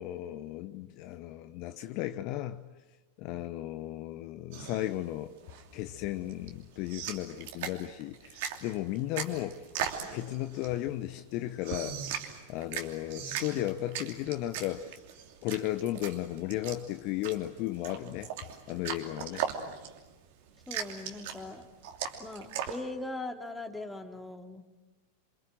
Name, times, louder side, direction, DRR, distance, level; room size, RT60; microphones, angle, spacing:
voice 1, 0.0-2.6 3.2-5.3 5.7-9.6 10.1-12.0 12.5-14.9 15.4-18.3 18.7-19.5, left 14 dB, 45° left, 0.9 m, -35 dB
sound 1, 4.5-22.8, right 8 dB, 55° right, 2.9 m, -39 dB
voice 2, 20.7-21.7 22.2-24.6, left 2 dB, 5° left, 2.7 m, -40 dB
28.5 x 25.5 x 7.6 m
figure-of-eight pair, 90°, 0 cm